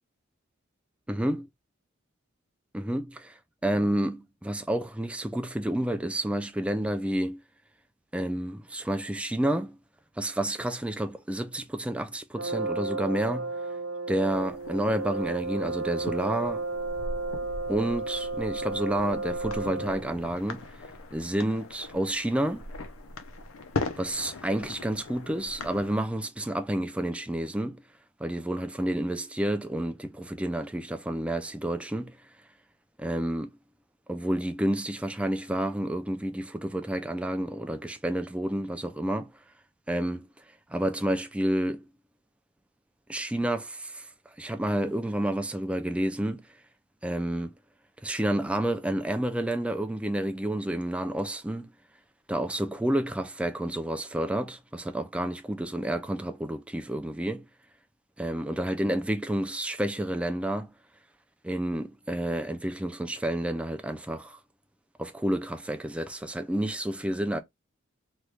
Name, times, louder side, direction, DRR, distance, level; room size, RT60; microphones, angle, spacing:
voice 1, 1.1-1.5 2.7-7.4 8.1-9.8 10.2-13.6 14.1-16.6 17.7-20.8 21.1-22.7 24.0-27.8 28.2-32.3 33.0-33.5 34.1-39.4 39.9-40.4 40.7-41.9 43.1-46.5 47.0-47.5 48.0-51.7 52.3-57.5 58.2-60.7 61.4-64.4 65.0-67.4, right 1 dB, 5° right, 0.3 m, -30 dB
Brass instrument, 12.4-20.2, right 3 dB, 70° right, 0.6 m, -33 dB
sound 1, 14.3-26.0, left 3 dB, 85° left, 0.6 m, -40 dB
3.1 x 2.3 x 3.2 m
head